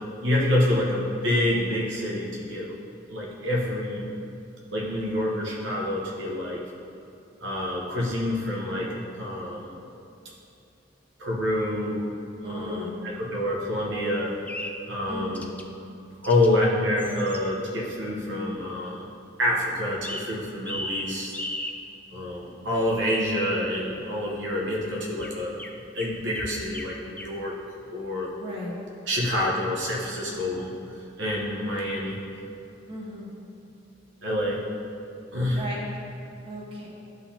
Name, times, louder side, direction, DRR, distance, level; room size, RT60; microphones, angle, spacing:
voice 1, 0.0-2.7 3.1-4.1 4.7-6.6 7.4-9.7 11.2-12.0 12.4-14.3 14.9-15.4 16.2-19.0 19.4-21.3 22.1-25.5 25.9-27.5 27.9-28.3 29.1-32.2 34.2-34.6 35.3-35.6, left 1 dB, 75° right, -3 dB, 1.0 m, -27 dB
voice 2, 12.4-13.0 15.1-15.5 28.4-28.8 32.9-33.3 35.5-35.9 36.4-36.9, equal, 30° right, -5 dB, 1.3 m, -35 dB
sound 1, 14.2-14.8 15.3-15.6 16.2-16.5 17.0-17.4 20.0-20.3 20.7-21.8 25.2-26.9 27.2-27.4, left 1 dB, 10° left, 0.4 m, -36 dB
12.0 x 4.0 x 2.8 m, 2.7 s
head